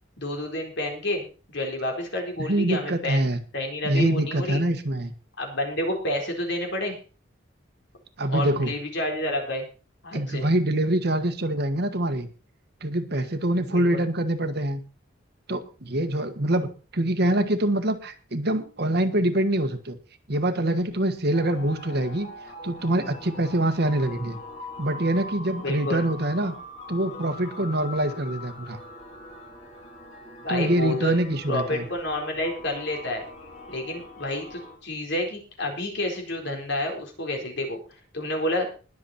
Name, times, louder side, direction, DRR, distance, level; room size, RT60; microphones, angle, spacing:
voice 1, 0.2-3.2 3.5-4.6 5.4-7.0 8.3-9.6 10.0-10.5 13.7-14.0 25.6-26.1 30.4-33.2 33.7-37.8 38.1-38.7, left 1 dB, 60° left, 2 dB, 4.2 m, -29 dB
voice 2, 2.5-3.4 3.8-5.1 8.2-8.7 10.1-12.3 12.8-14.8 15.5-20.0 20.3-22.3 22.6-24.4 24.8-26.5 26.9-28.8 30.5-31.8, right 1 dB, 55° right, 8 dB, 1.6 m, -25 dB
sound 1, 21.3-34.8, left 1 dB, 35° left, 3.6 m, -42 dB
21.0 x 7.4 x 4.3 m, 0.36 s
head